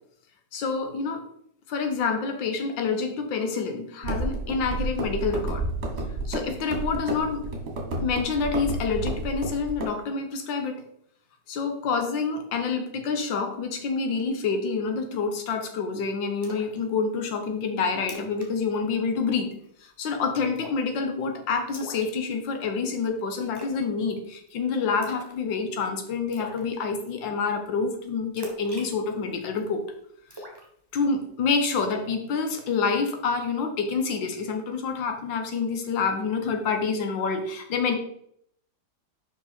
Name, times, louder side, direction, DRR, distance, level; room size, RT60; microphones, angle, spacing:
voice 1, 0.5-1.2 1.7-5.7 6.3-7.4 8.0-10.8 11.5-19.5 19.8-29.8 30.4-30.5 30.9-38.0, left 5 dB, 85° left, 6 dB, 1.7 m, -27 dB
sound 1, 4.0-9.8, right 2 dB, 40° right, 1.4 m, -31 dB
Splash splatter, 16.4-16.8 17.1-17.2 17.7-17.8 18.0-18.5 18.7-18.9 19.3-19.6 20.5-20.9 21.7-22.6 23.5-23.8 24.1-24.5 25.0-25.4 25.7-25.8 26.3-26.6 28.4-29.6 30.3-31.2 31.7-32.0, equal, 15° right, 1.2 m, -41 dB
5.4 x 5.3 x 4.2 m, 0.70 s
omnidirectional pair, 2.0 m